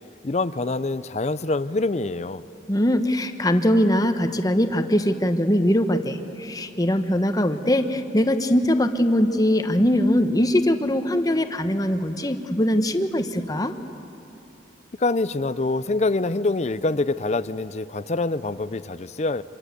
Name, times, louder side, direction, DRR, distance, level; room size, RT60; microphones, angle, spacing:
voice 1, 0.2-2.4 15.0-19.4, left 2 dB, 35° left, 15 dB, 0.5 m, -25 dB
voice 2, 2.7-13.7, equal, 20° left, 8 dB, 1.1 m, -21 dB
26.5 x 24.5 x 8.3 m, 2.9 s
head